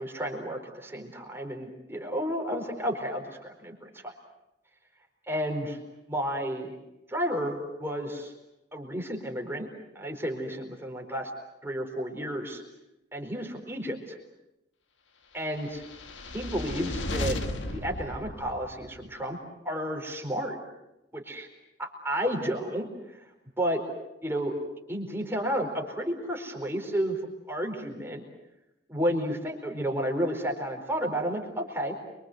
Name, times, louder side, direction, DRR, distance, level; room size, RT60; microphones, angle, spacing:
voice 1, 0.0-4.1 5.3-5.8 6.1-6.7 7.1-8.3 8.7-9.7 9.9-11.3 11.6-12.6 13.1-14.0 15.3-15.8 16.3-17.4 17.7-19.4 19.6-20.6 21.1-21.5 21.8-22.9 23.6-23.8 24.2-24.5 24.9-27.2 27.5-28.2 28.9-32.0, equal, 15° right, 2 dB, 4.4 m, -31 dB
sound 1, 15.7-19.1, left 1 dB, 85° left, 1.8 m, -35 dB
29.0 x 24.5 x 7.9 m, 0.92 s
head